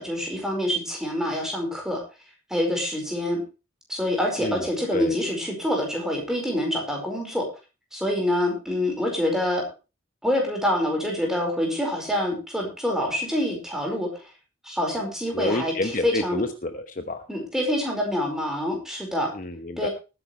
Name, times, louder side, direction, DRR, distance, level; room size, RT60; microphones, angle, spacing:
voice 1, 0.0-2.0 2.5-3.4 3.9-7.4 7.9-9.6 10.2-14.3 14.6-16.4 17.3-19.3 19.8-19.9, left 1 dB, 5° right, 1 dB, 4.9 m, -26 dB
voice 2, 15.3-17.2 19.3-19.9, left 2 dB, 40° left, 7 dB, 1.1 m, -29 dB
19.5 x 9.9 x 3.2 m, 0.31 s
head